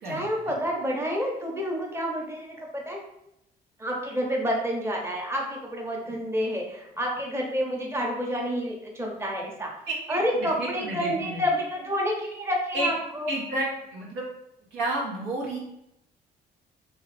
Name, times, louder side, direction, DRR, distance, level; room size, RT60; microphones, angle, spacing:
voice 1, 0.1-3.0 3.8-9.7 10.1-13.3, equal, 10° right, -1 dB, 0.9 m, -29 dB
voice 2, 9.9-11.4 12.7-12.9 13.3-14.2 14.7-15.6, right 2 dB, 75° right, -2 dB, 0.9 m, -31 dB
2.7 x 2.3 x 3.2 m, 0.82 s
hypercardioid pair, 55°, 21 cm